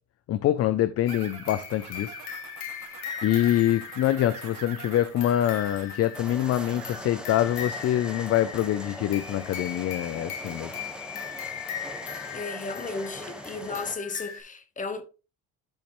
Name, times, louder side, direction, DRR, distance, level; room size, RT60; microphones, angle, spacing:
voice 1, 0.3-2.1 3.2-10.7, left 12 dB, 40° left, 0.5 m, -25 dB
sound 1, 1.1-14.4, left 8 dB, 70° left, 2.7 m, -39 dB
sound 2, 1.1-7.0, right 9 dB, 55° right, 1.6 m, -44 dB
sound 3, 6.1-13.9, right 1 dB, ahead, 1.3 m, -41 dB
voice 2, 12.3-15.0, left 3 dB, 20° left, 1.1 m, -34 dB
10.5 x 5.1 x 3.1 m
cardioid pair, 135°, 40 cm